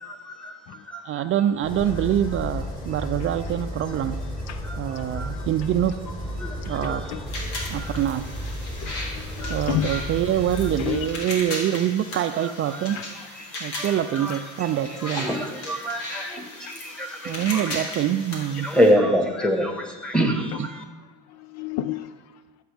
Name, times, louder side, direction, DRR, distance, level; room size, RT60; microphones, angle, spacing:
voice 1, 0.0-0.6 0.9-1.2 4.6-5.4 6.4-8.0 9.3-10.1 12.4-17.9 18.6-20.8, equal, ahead, 3 dB, 1.6 m, -27 dB
voice 2, 1.1-4.2 4.8-5.9 6.7-7.1 7.7-8.2 9.5-13.0 13.6-15.3 17.3-18.7, right 11 dB, 45° right, 10 dB, 0.4 m, -25 dB
voice 3, 1.6-2.2 4.5-4.6 5.3-5.5 7.1-7.2 8.8-9.9 10.8-11.1 12.9-13.1 13.6-13.7 14.3-14.4 14.9-15.0 16.3-16.8 17.4-17.7 21.3-22.1, left 12 dB, 60° left, 13 dB, 0.5 m, -32 dB
sound 1, 1.6-11.0, equal, 30° left, 3.3 m, -33 dB
sound 2, 7.3-18.9, left 1 dB, 90° left, 2.2 m, -37 dB
12.5 x 7.3 x 3.5 m, 1.2 s
supercardioid pair, 100°, 30 cm